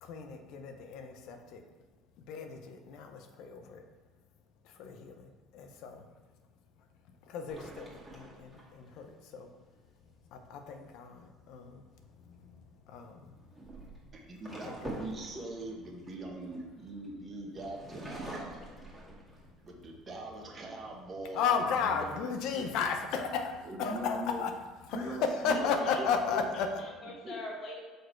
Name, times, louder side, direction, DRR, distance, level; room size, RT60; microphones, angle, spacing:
voice 1, 0.0-1.6 2.3-3.8 4.6-6.1 7.3-9.5 10.3-11.8 12.3-12.6 12.9-13.2 14.7-14.8 21.3-24.5 24.9-26.8, left 5 dB, 70° left, 5 dB, 0.7 m, -34 dB
sound 1, 7.5-9.1 12.0-12.3 13.3-17.1 17.6-19.7 20.2-20.3 20.7-21.2, right 1 dB, 10° right, 1.9 m, -45 dB
voice 2, 14.2-18.6 19.6-21.4 21.8-22.2 23.6-24.4 24.9-26.4 27.2-27.3, right 1 dB, 35° right, 0 dB, 1.2 m, -42 dB
voice 3, 25.4-26.0 26.3-27.8, left 2 dB, 50° left, -1 dB, 1.5 m, -43 dB
5.2 x 4.0 x 4.5 m, 1.3 s
supercardioid pair, 80°, 0 cm